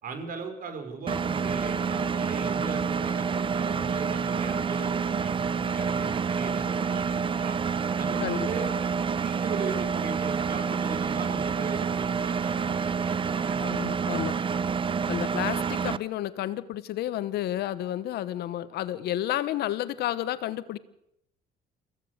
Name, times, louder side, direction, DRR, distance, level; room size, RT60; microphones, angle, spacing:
voice 1, 0.0-4.9 5.2-7.6 8.0-8.7 9.2-13.6, right 5 dB, 55° right, 7 dB, 5.1 m, -38 dB
Engine, 1.1-16.0, right 6 dB, 30° right, 0.8 m, -28 dB
voice 2, 13.6-14.3 15.1-20.8, left 13 dB, 75° left, 15 dB, 1.2 m, -31 dB
25.0 x 16.0 x 8.2 m, 0.81 s
cardioid pair, 110°, 17 cm